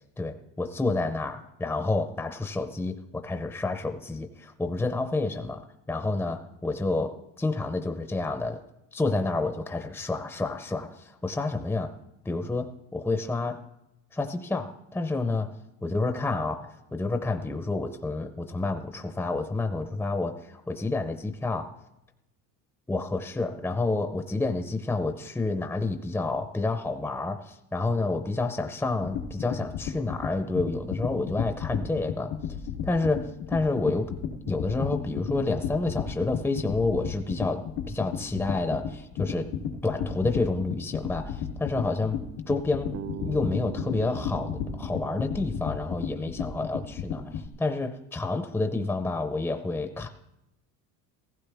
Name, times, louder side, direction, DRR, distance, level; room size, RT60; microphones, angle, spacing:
voice 1, 0.2-5.6 5.9-8.6 8.9-11.9 12.2-13.6 14.1-15.5 15.8-21.7 22.9-32.3 32.8-34.2 34.5-39.5 39.8-42.2 42.5-50.1, left 3 dB, 5° left, 7 dB, 0.6 m, -29 dB
sound 1, 29.0-47.5, left 8 dB, 90° left, 3.0 m, -33 dB
Bass guitar, 42.9-47.0, right 8 dB, 45° right, 0.7 m, -42 dB
16.0 x 15.5 x 3.4 m, 0.88 s
cardioid pair, 130°, 37 cm